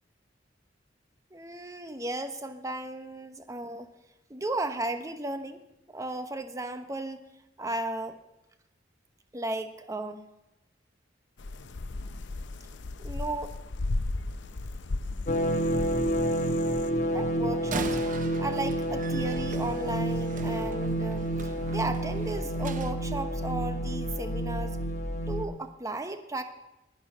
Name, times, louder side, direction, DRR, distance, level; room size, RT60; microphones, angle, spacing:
voice 1, 1.3-3.9 4.3-5.6 5.9-7.2 7.6-8.2 9.3-10.3 13.0-13.6 17.1-24.8 25.3-26.4, right 2 dB, 20° right, 8 dB, 0.9 m, -35 dB
sound 1, 11.4-16.9, left 2 dB, 80° left, 0.6 m, -35 dB
sound 2, 15.3-25.5, right 1 dB, 40° left, 1.1 m, -29 dB
Slam, 17.6-23.0, right 3 dB, 45° right, 0.8 m, -40 dB
19.0 x 6.3 x 6.2 m, 0.92 s
head